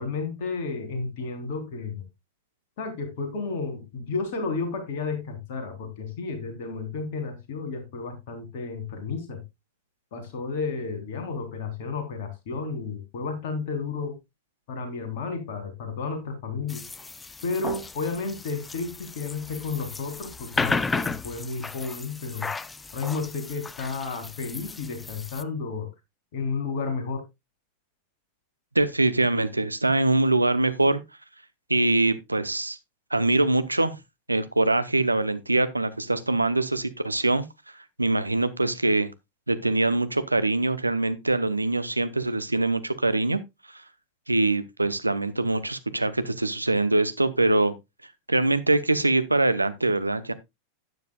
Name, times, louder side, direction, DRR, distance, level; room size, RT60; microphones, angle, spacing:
voice 1, 0.0-2.0 2.8-9.4 10.1-14.2 14.7-16.9 17.4-22.5 22.9-25.9 26.3-27.2, left 4 dB, 50° left, 3.6 m, -32 dB
sound 1, 16.7-25.4, left 4 dB, 10° left, 0.5 m, -34 dB
voice 2, 28.7-31.0 31.7-32.8 33.1-34.0 34.3-37.4 38.0-39.1 39.5-43.4 43.7-43.8 44.3-47.7 48.3-50.3, right 2 dB, 85° right, 0.8 m, -23 dB
12.5 x 9.4 x 2.3 m
figure-of-eight pair, 90°, 0 cm